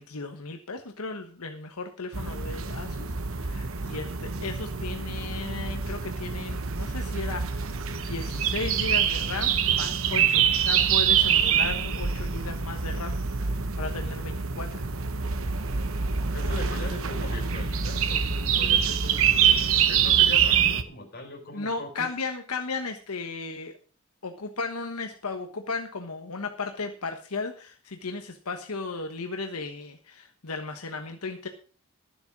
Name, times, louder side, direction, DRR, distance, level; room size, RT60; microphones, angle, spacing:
voice 1, 0.0-13.1 13.5-14.9 19.3-19.5 21.5-23.7 24.2-31.5, left 4 dB, 85° left, 5 dB, 1.3 m, -35 dB
sound 1, 2.1-20.8, right 7 dB, 65° right, 1.0 m, -25 dB
voice 2, 16.3-22.1, left 1 dB, 45° left, 2 dB, 4.5 m, -39 dB
12.5 x 7.9 x 6.0 m, 0.40 s
head